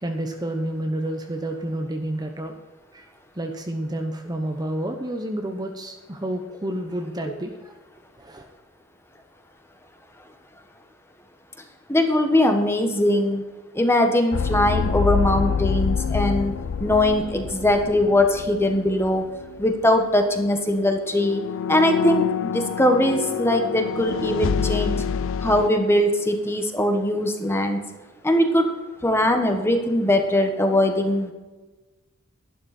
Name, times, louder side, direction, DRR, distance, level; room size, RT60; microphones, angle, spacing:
voice 1, 0.0-2.5 2.9-3.1 3.4-7.7 8.2-8.5, right 1 dB, 20° right, 4 dB, 0.9 m, -29 dB
voice 2, 11.9-13.4 13.7-16.5 16.8-19.3 19.6-21.4 21.7-25.1 25.4-27.8 28.2-28.7 29.0-31.3, left 1 dB, 10° left, 4 dB, 1.4 m, -21 dB
sound 1, 14.3-19.2 19.4-19.7 21.1-25.7, left 7 dB, 60° left, 0.4 m, -26 dB
12.0 x 11.5 x 4.4 m, 1.2 s
head